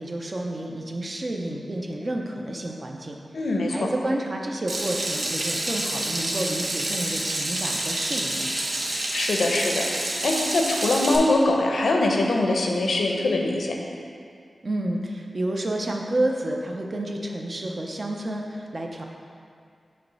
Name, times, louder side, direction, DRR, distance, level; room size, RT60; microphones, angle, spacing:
voice 1, 0.0-8.5 14.6-19.0, right 1 dB, 40° right, 1 dB, 0.6 m, -30 dB
voice 2, 3.3-3.8 8.8-13.8, left 2 dB, 85° left, 1 dB, 0.6 m, -23 dB
Water tap faucet / Sink (filling or washing), 4.7-11.2, right 1 dB, 75° right, 0.8 m, -28 dB
5.7 x 3.1 x 5.4 m, 2.3 s
wide cardioid pair, 95°, 0 cm